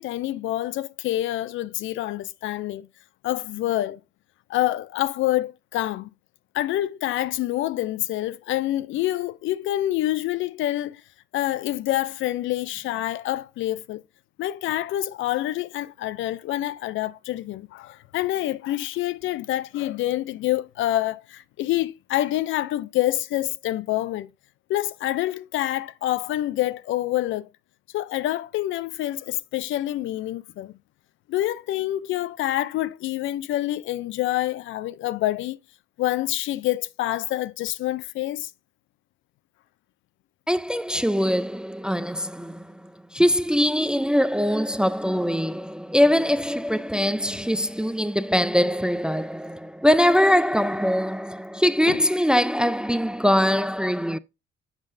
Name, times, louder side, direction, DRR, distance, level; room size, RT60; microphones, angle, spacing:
voice 1, 0.0-2.9 3.2-4.0 4.5-6.1 6.5-11.0 11.3-14.0 14.4-24.3 24.7-27.5 27.9-30.7 31.3-35.6 36.0-38.5 51.9-52.0, left 14 dB, 75° left, 0.4 m, -27 dB
voice 2, 40.5-54.2, equal, 5° right, 0.3 m, -22 dB
7.4 x 6.3 x 2.5 m
cardioid pair, 90°, 20 cm